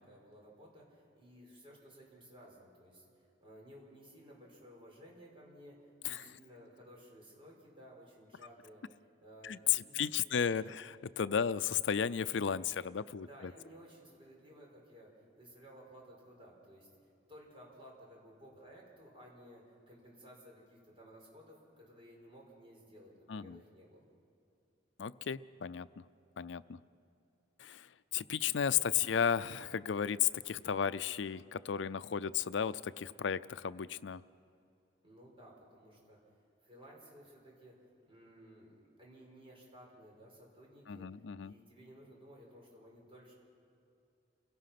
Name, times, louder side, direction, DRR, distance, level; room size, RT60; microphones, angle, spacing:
voice 1, 0.0-10.8 11.3-11.4 13.1-15.1 15.4-16.9 17.3-24.0 35.0-36.2 36.6-37.7 38.1-41.1 41.4-43.3, equal, 30° right, -2 dB, 5.2 m, -56 dB
voice 2, 9.4-13.5 23.3-23.6 25.0-26.0 26.4-26.8 27.6-27.9 28.1-34.2 40.9-41.5, left 8 dB, 75° left, 16 dB, 0.5 m, -34 dB
28.5 x 17.0 x 5.9 m, 2.6 s
head